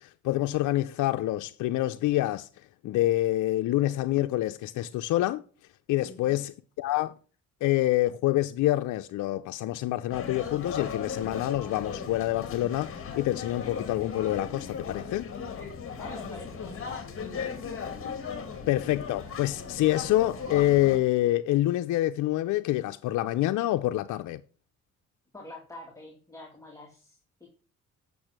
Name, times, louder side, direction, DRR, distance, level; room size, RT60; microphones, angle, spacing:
voice 1, 0.0-2.5 2.8-5.4 5.9-6.5 6.8-7.1 7.6-15.3 18.7-24.4, left 15 dB, 80° left, 0.6 m, -26 dB
voice 2, 6.0-6.4 16.0-17.0 25.3-27.5, left 1 dB, 10° left, 2.7 m, -46 dB
sound 1, 10.1-21.0, left 6 dB, 45° left, 2.4 m, -37 dB
8.4 x 6.9 x 6.0 m
cardioid pair, 90°, 30 cm